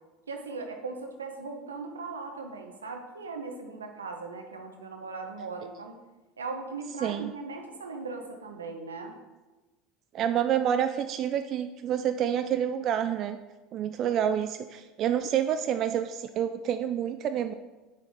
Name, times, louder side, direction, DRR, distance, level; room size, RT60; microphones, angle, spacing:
voice 1, 0.3-5.9 6.4-9.1, right 4 dB, 90° right, 4 dB, 1.0 m, -38 dB
voice 2, 10.1-13.4 13.7-17.5, right 9 dB, 50° right, 9 dB, 0.4 m, -28 dB
8.3 x 6.5 x 3.5 m, 1.1 s
hypercardioid pair, 75°, 0 cm